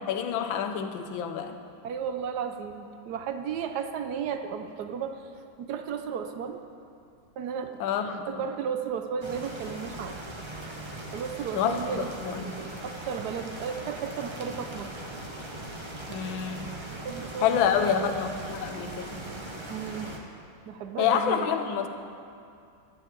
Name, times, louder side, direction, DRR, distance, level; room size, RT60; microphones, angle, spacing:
voice 1, 0.1-1.6 7.8-8.3 11.5-12.4 16.1-16.7 17.4-19.2 21.0-21.9, left 8 dB, 75° left, 6 dB, 1.5 m, -28 dB
voice 2, 1.8-5.2 5.6-6.6 7.4-7.8 8.0-10.2 11.1-14.9 16.9-18.1 19.7-20.1 20.7-21.5, right 7 dB, 70° right, 7 dB, 1.0 m, -34 dB
sound 1, 9.2-20.2, right 1 dB, 25° right, 0.6 m, -40 dB
11.5 x 7.3 x 8.5 m, 2.4 s
omnidirectional pair, 2.2 m